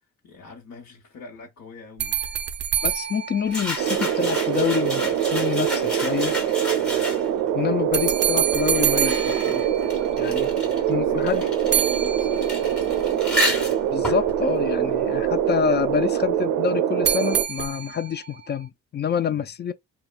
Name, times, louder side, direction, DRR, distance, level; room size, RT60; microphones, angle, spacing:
voice 1, 0.2-2.2 6.8-7.1 10.5-13.8 19.3-19.5, left 4 dB, 60° left, 1.2 m, -45 dB
sound 1, 2.0-4.4 7.9-10.4 11.7-12.9 17.0-18.3, right 10 dB, 40° right, 0.4 m, -27 dB
voice 2, 2.8-6.4 7.5-9.6 10.2-10.5 10.9-11.4 13.9-19.7, left 7 dB, 35° left, 0.4 m, -27 dB
sound 2, 3.5-7.5 8.3-15.7, equal, 5° left, 1.1 m, -31 dB
sound 3, 3.8-17.4, right 10 dB, 85° right, 0.5 m, -24 dB
2.8 x 2.2 x 2.4 m
cardioid pair, 90°, 30 cm